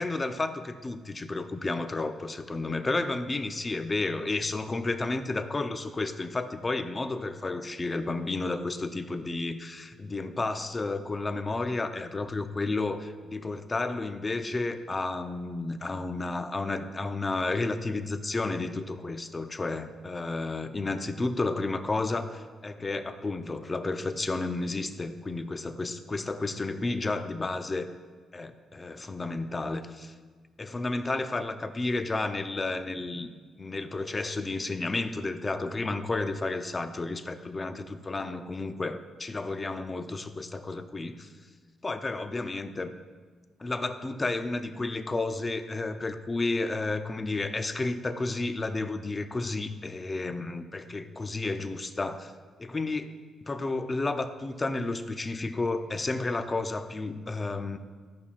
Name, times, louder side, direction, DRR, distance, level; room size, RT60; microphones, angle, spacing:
voice 1, 0.0-27.9 28.3-30.1 30.6-33.3 33.6-41.3 41.8-42.9 43.6-52.3 52.6-57.8, left 3 dB, 25° left, 9 dB, 0.5 m, -32 dB
13.5 x 5.6 x 2.4 m, 1.5 s
cardioid pair, 90°, 0 cm